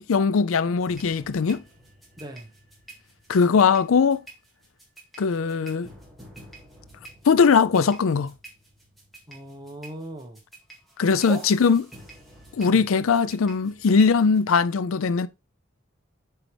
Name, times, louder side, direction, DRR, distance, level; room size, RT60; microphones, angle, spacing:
voice 1, 0.0-1.6 3.3-4.2 5.2-5.9 7.3-8.3 11.0-11.8 12.6-15.3, left 5 dB, 85° left, 0.4 m, -20 dB
sound 1, 0.8-14.6, right 2 dB, ahead, 2.0 m, -49 dB
voice 2, 2.2-2.5 9.3-10.4 11.3-11.5 12.6-12.8, right 2 dB, 20° right, 1.1 m, -37 dB
7.8 x 4.7 x 3.3 m
head